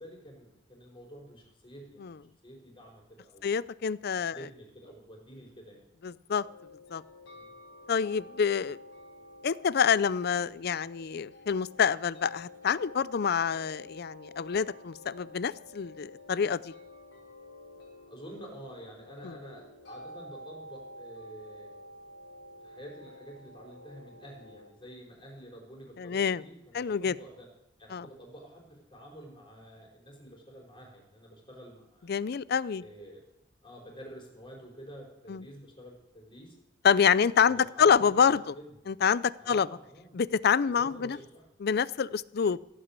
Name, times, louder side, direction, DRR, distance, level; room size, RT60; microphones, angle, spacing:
voice 1, 0.0-3.4 4.3-5.8 7.3-7.5 18.1-21.7 22.6-27.5 27.8-32.1 32.8-33.2 33.6-36.5 37.4-38.6 39.4-40.1 40.7-41.4, equal, 25° left, -1 dB, 5.0 m, -49 dB
voice 2, 3.4-4.4 6.0-6.4 6.9-7.0 7.9-8.8 9.4-16.7 19.2-19.4 26.0-26.4 26.7-27.1 27.9-28.1 32.1-32.8 35.3-35.4 36.8-38.4 38.9-39.7 40.1-41.2 41.6-42.6, left 6 dB, 55° left, 19 dB, 0.5 m, -27 dB
sound 1, 6.3-24.7, left 1 dB, 75° left, 5.8 m, -50 dB
16.5 x 8.9 x 8.2 m, 0.83 s
head